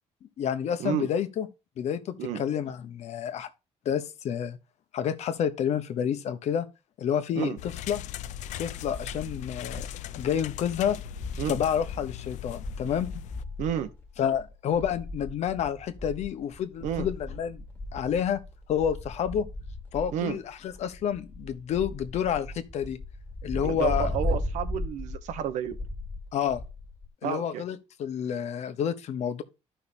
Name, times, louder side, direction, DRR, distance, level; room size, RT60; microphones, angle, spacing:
voice 1, 0.4-1.5 1.8-3.5 3.8-4.6 4.9-6.7 7.0-8.0 8.6-9.9 10.2-11.0 11.5-13.2 14.2-17.6 17.9-18.4 18.7-19.5 19.9-23.0 23.4-24.1 26.3-26.6 27.2-29.4, left 8 dB, 65° left, 1.1 m, -29 dB
sound 1, 7.6-13.4, left 12 dB, 90° left, 0.5 m, -39 dB
sound 2, 8.7-10.1 10.4-10.5 10.8-27.1, left 2 dB, 15° left, 1.9 m, -37 dB
voice 2, 13.6-13.9 16.8-17.1 20.1-20.4 23.6-25.8 27.2-27.6, right 9 dB, 90° right, 1.1 m, -31 dB
13.5 x 5.7 x 2.7 m
cardioid pair, 130°, 12 cm